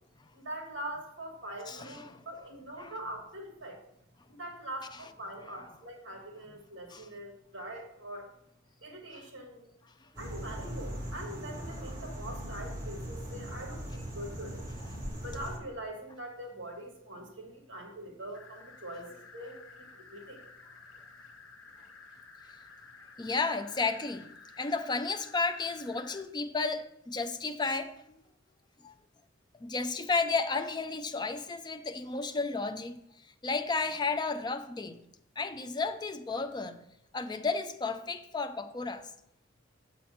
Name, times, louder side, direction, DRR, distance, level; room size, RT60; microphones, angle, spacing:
voice 1, 0.3-3.8 4.3-8.3 8.8-9.6 10.2-14.6 15.2-20.4, right 1 dB, 65° right, 1.7 m, -43 dB
voice 2, 1.7-2.2 2.8-2.9 5.5-5.6 6.9-7.1 23.2-24.3 24.6-28.2 28.8-28.9 29.6-33.0 33.2-35.0 35.4-36.8 37.1-39.1, left 4 dB, 20° left, 0.4 m, -33 dB
sound 1, 10.1-15.6, equal, 20° right, 2.0 m, -40 dB
sound 2, 18.3-26.2, left 4 dB, 85° left, 1.1 m, -53 dB
7.5 x 4.2 x 5.6 m
head